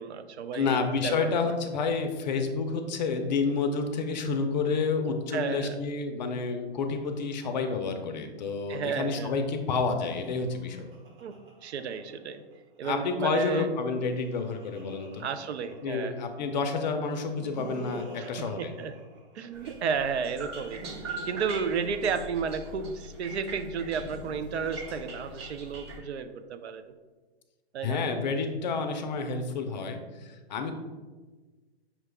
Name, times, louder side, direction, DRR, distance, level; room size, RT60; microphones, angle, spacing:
voice 1, 0.0-0.8 1.0-1.5 5.3-5.8 8.7-9.4 11.2-12.4 12.8-13.7 15.2-16.1 18.2-18.9 19.3-20.8 21.2-26.8 27.7-28.0, right 6 dB, 80° right, 9 dB, 0.5 m, -32 dB
voice 2, 0.5-10.9 12.8-15.3 15.8-18.7 27.8-30.7, left 4 dB, 45° left, 6 dB, 0.5 m, -29 dB
Laughter, 10.0-12.8 13.9-16.5 17.1-19.8 20.5-22.9 23.8-25.9, right 2 dB, 50° right, 1.1 m, -48 dB
sound 1, 19.5-26.0, right 2 dB, 25° right, 0.5 m, -42 dB
5.8 x 2.3 x 3.3 m, 1.3 s
hypercardioid pair, 145°, 33 cm